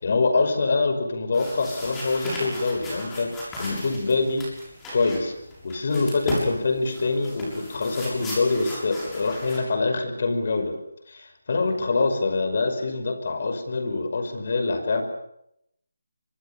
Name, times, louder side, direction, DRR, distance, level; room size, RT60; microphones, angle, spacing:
voice 1, 0.0-4.4 4.9-5.3 5.6-10.8 11.1-15.0, left 3 dB, 45° left, 7 dB, 5.4 m, -25 dB
sound 1, 1.3-9.6, left 1 dB, 5° left, 6.9 m, -36 dB
25.5 x 24.0 x 7.0 m, 0.76 s
figure-of-eight pair, 175°, 0 cm